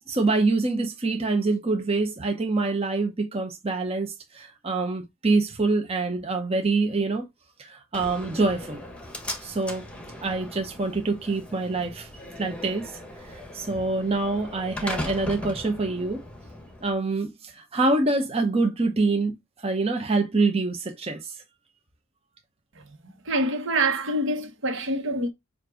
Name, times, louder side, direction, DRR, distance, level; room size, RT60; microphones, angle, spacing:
voice 1, 0.1-7.3 7.6-8.8 9.4-9.9 10.2-12.1 12.4-12.9 13.5-16.2 16.8-21.4, right 3 dB, 30° right, 0.8 m, -25 dB
Slam, 7.9-16.9, left 1 dB, 5° left, 1.2 m, -38 dB
voice 2, 22.7-25.3, right 2 dB, 60° right, 1.3 m, -26 dB
7.3 x 2.6 x 4.9 m
head